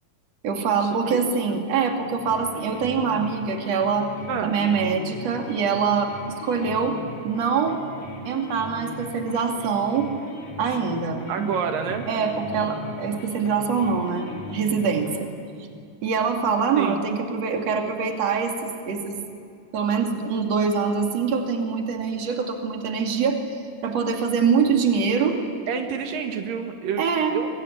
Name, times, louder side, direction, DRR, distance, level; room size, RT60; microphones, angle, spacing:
voice 1, 0.4-4.1 4.4-7.0 7.2-7.8 8.3-10.1 10.6-11.5 12.1-15.3 16.0-19.2 19.7-23.4 23.8-25.4 27.0-27.4, right 5 dB, 50° right, 3 dB, 3.5 m, -24 dB
sound 1, 2.0-15.2, left 2 dB, 85° left, 5.3 m, -39 dB
voice 2, 11.3-12.1 16.8-17.0 25.7-27.5, right 6 dB, 90° right, 5 dB, 3.4 m, -28 dB
24.5 x 22.5 x 10.0 m, 2.5 s
omnidirectional pair, 3.8 m